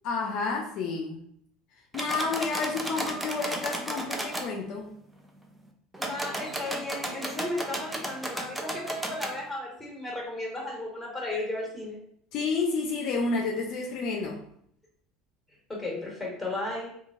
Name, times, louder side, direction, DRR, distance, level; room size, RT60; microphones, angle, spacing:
voice 1, 0.0-1.2 1.9-4.9 12.3-14.4, left 4 dB, 60° left, 1 dB, 0.4 m, -30 dB
sound 1, 1.9-4.5 5.9-9.3, right 1 dB, 10° right, 0.5 m, -34 dB
voice 2, 6.0-12.0 15.7-16.9, left 2 dB, 5° left, -3 dB, 1.4 m, -34 dB
3.0 x 2.5 x 2.4 m, 0.68 s
hypercardioid pair, 85°, 0 cm